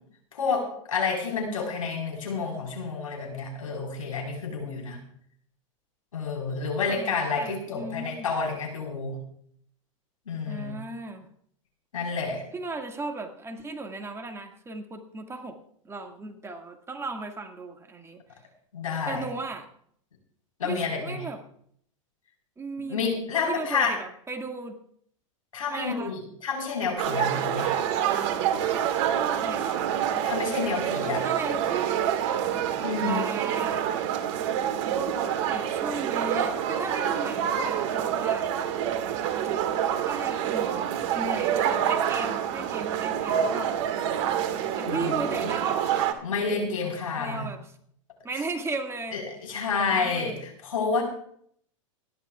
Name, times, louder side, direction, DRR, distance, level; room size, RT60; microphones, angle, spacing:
voice 1, 0.3-5.0 6.1-9.2 10.3-10.7 11.9-12.4 18.7-19.3 20.6-21.2 22.9-24.0 25.5-27.7 30.2-31.3 32.8-33.3 44.9-45.5 46.2-47.5 49.1-51.0, left 5 dB, 90° left, 2 dB, 4.6 m, -29 dB
voice 2, 6.9-8.3 10.5-11.3 12.5-15.6 15.8-18.2 19.1-19.7 20.6-21.4 22.6-23.2 23.5-24.8 25.7-26.1 29.1-29.9 31.0-32.0 33.0-33.8 35.2-38.5 40.0-43.7 44.8-45.8 47.2-47.7 48.2-49.2 49.7-50.4, right 3 dB, 15° right, 3 dB, 2.0 m, -36 dB
sound 1, 27.0-46.1, right 9 dB, 55° right, 1.9 m, -27 dB
27.0 x 11.5 x 2.4 m, 0.65 s
hypercardioid pair, 105°, 17 cm